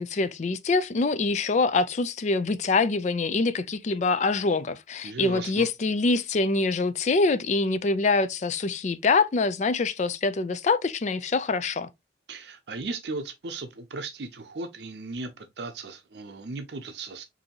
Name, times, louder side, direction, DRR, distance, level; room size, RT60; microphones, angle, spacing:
voice 1, 0.0-11.9, left 3 dB, 40° left, 0.4 m, -25 dB
voice 2, 5.0-5.7 12.3-17.2, right 3 dB, 65° right, 0.6 m, -36 dB
5.3 x 2.7 x 2.8 m
head